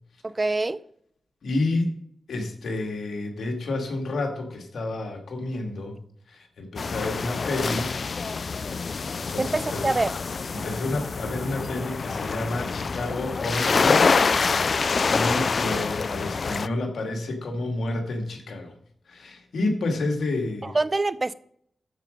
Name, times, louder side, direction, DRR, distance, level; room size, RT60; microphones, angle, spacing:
voice 1, 0.2-0.8 9.4-10.1 20.6-21.3, right 2 dB, 35° right, 17 dB, 0.5 m, -25 dB
voice 2, 1.4-2.0 2.3-6.0 6.3-7.9 9.1-9.9 10.5-14.2 14.4-18.7 19.1-20.8, left 2 dB, 80° left, 3 dB, 2.2 m, -30 dB
sound 1, 6.8-16.7, left 4 dB, 60° left, 0.3 m, -26 dB
13.5 x 5.1 x 5.3 m, 0.68 s
cardioid pair, 55°, 0 cm